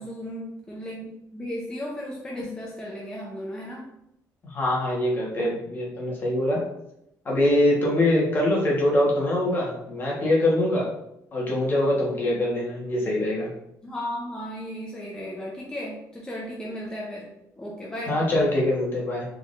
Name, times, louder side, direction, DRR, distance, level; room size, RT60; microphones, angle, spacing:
voice 1, 0.0-3.9 13.8-17.3 17.6-18.2, equal, 10° left, -3 dB, 0.6 m, -35 dB
voice 2, 4.4-6.6 7.2-10.9 11.3-13.5 18.1-19.2, left 1 dB, 30° left, -3 dB, 1.3 m, -23 dB
4.4 x 3.7 x 2.6 m, 0.81 s
cardioid pair, 145°, 7 cm